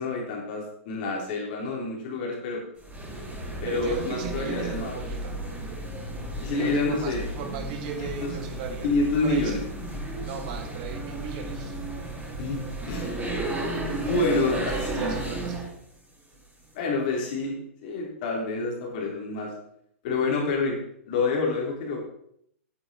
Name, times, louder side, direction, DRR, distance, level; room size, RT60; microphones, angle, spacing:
voice 1, 0.0-2.6 3.6-4.9 6.4-7.3 7.9-8.3 8.8-9.6 12.4-12.6 12.9-13.1 14.0-15.2 16.7-17.5 17.8-19.5 20.0-20.8 21.1-22.0, left 3 dB, 40° left, -1 dB, 3.3 m, -28 dB
sound 1, 2.8-15.7, right 2 dB, 15° right, 4.8 m, -33 dB
voice 2, 3.6-5.4 6.6-8.9 9.2-9.6 10.2-11.8 14.2-15.7, right 6 dB, 35° right, 7 dB, 1.4 m, -36 dB
9.5 x 8.1 x 4.2 m, 0.70 s
hypercardioid pair, 165°, 8 cm